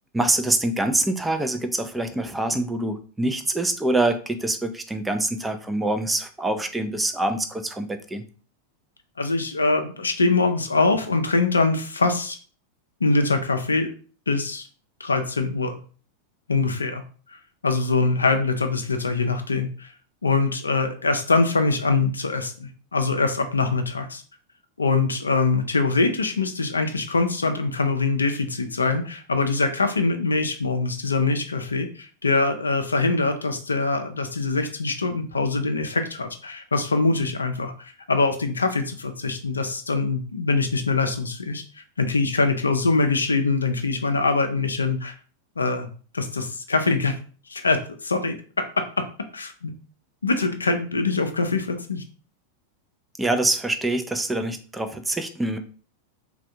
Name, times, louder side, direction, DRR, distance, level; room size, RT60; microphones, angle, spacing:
voice 1, 0.1-8.2 53.2-55.6, right 2 dB, 10° right, 8 dB, 0.4 m, -25 dB
voice 2, 9.2-12.4 13.0-13.9 14.3-14.7 15.0-15.8 16.5-17.0 17.3-19.9 20.2-24.2 24.8-45.1 45.6-45.9 46.1-47.2 47.5-49.0 49.3-49.7 50.2-52.0, left 3 dB, 75° left, 7 dB, 0.4 m, -23 dB
3.3 x 2.2 x 2.7 m, 0.40 s
figure-of-eight pair, 90°, 0 cm